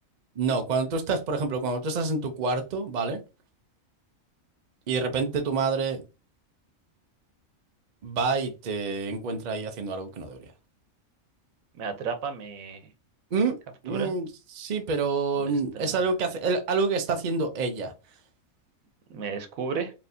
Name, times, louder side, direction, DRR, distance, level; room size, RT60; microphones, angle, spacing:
voice 1, 0.4-3.2 4.9-6.0 8.0-10.4 13.3-13.5 13.8-14.3 14.5-17.9, right 4 dB, 45° right, 6 dB, 0.6 m, -27 dB
voice 2, 11.7-12.9 13.9-14.1 15.3-16.1 19.1-19.9, right 5 dB, 90° right, 8 dB, 1.2 m, -34 dB
4.3 x 3.2 x 2.7 m, 0.29 s
omnidirectional pair, 1.4 m